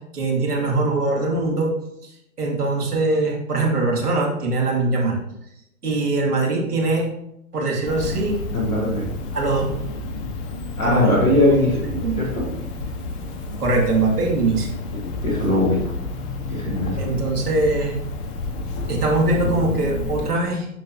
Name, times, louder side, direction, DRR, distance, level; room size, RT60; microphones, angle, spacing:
voice 1, 0.1-1.7 2.0-5.2 5.8-7.1 7.5-8.4 9.3-9.7 10.8-11.2 11.5-12.2 13.6-14.7 17.0-17.9 18.9-20.7, right 2 dB, 80° right, -1 dB, 2.6 m, -22 dB
Cricket, 7.9-20.3, left 3 dB, 35° left, 1.2 m, -30 dB
voice 2, 8.5-9.0 10.8-11.8 12.2-12.5 15.2-15.9 16.5-17.1, left 1 dB, 5° left, -8 dB, 0.3 m, -20 dB
12.0 x 4.4 x 2.8 m, 0.80 s
hypercardioid pair, 125°, 45 cm